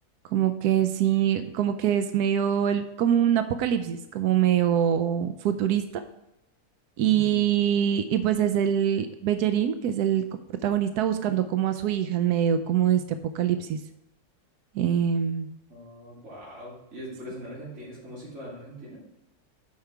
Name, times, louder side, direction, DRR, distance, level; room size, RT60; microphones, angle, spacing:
voice 1, 0.3-5.8 7.0-10.2 10.6-13.8 14.7-15.5, right 9 dB, 90° right, 9 dB, 1.1 m, -24 dB
voice 2, 7.0-7.4 15.7-19.0, equal, 45° right, -7 dB, 3.3 m, -41 dB
8.6 x 5.8 x 4.7 m, 0.87 s
omnidirectional pair, 1.6 m